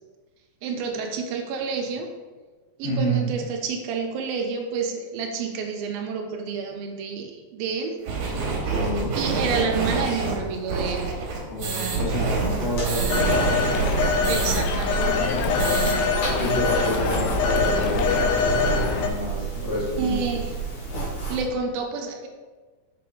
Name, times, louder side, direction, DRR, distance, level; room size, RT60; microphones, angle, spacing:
voice 1, 0.6-2.1 2.8-8.0 9.2-11.1 14.3-15.3 20.0-20.5 21.3-22.3, right 5 dB, 80° right, 3 dB, 2.4 m, -29 dB
voice 2, 2.8-3.3 8.6-9.1 11.5-13.6 16.4-20.3, equal, 20° left, -7 dB, 1.6 m, -29 dB
sound 1, 8.0-14.6 14.9-15.0 15.3-16.0, right 3 dB, 65° right, 2.4 m, -27 dB
sound 2, 12.2-21.4, right 4 dB, 55° left, 3.5 m, -29 dB
Telephone, 13.1-19.1, left 5 dB, 80° left, 2.4 m, -24 dB
6.4 x 5.8 x 3.7 m, 1.3 s
omnidirectional pair, 4.4 m